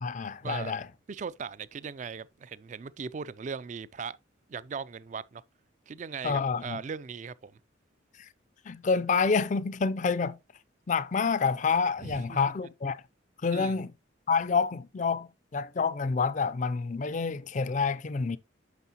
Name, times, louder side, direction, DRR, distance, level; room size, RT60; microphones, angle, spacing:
voice 1, 0.0-0.9 6.2-6.8 8.2-8.3 8.7-10.4 10.9-13.0 13.4-13.9 14.3-18.4, left 5 dB, 40° left, 0.4 m, -28 dB
voice 2, 1.1-4.2 4.5-5.4 5.9-7.5 12.0-12.4 13.5-13.8, right 5 dB, 35° right, 0.3 m, -38 dB
9.2 x 6.3 x 2.8 m
head